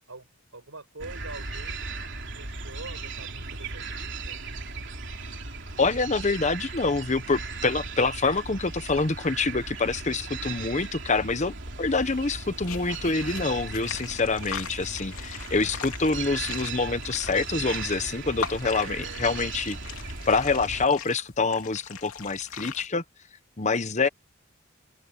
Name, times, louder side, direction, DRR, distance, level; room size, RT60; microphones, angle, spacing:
voice 1, 0.1-4.4 18.7-19.2, right 3 dB, 80° right, 5.5 m, -45 dB
sound 1, 1.0-20.9, right 4 dB, 55° right, 3.5 m, -37 dB
voice 2, 5.8-19.8 20.3-23.0 23.6-24.1, left 3 dB, 35° left, 0.9 m, -26 dB
sound 2, 12.0-22.9, left 6 dB, 85° left, 2.8 m, -40 dB
open air
head